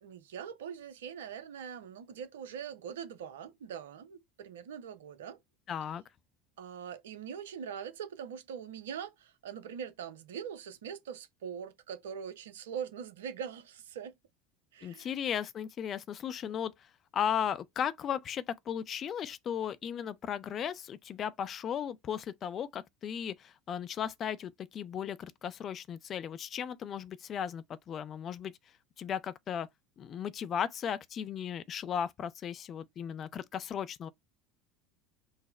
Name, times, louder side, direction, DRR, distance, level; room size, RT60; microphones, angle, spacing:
voice 1, 0.0-5.4 6.6-14.2 14.7-15.1, right 8 dB, 70° right, 0.5 m, -42 dB
voice 2, 5.7-6.0 14.8-16.7 17.1-28.5 29.0-29.7 30.0-34.1, left 8 dB, 40° left, 0.4 m, -36 dB
4.0 x 2.0 x 4.2 m
figure-of-eight pair, 70°, 0 cm